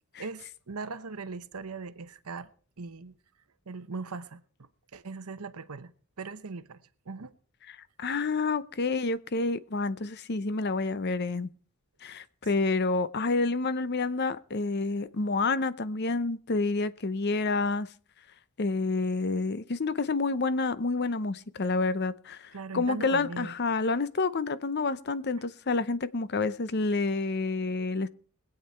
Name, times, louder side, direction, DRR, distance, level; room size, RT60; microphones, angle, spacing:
voice 1, 0.2-2.5 2.8-3.1 3.7-4.4 4.9-5.9 6.2-6.8 7.1-7.3 22.5-23.5, right 4 dB, 85° right, 0.9 m, -39 dB
voice 2, 8.0-11.5 12.0-17.9 18.6-28.1, left 3 dB, 50° left, 0.7 m, -28 dB
21.5 x 8.8 x 4.5 m
head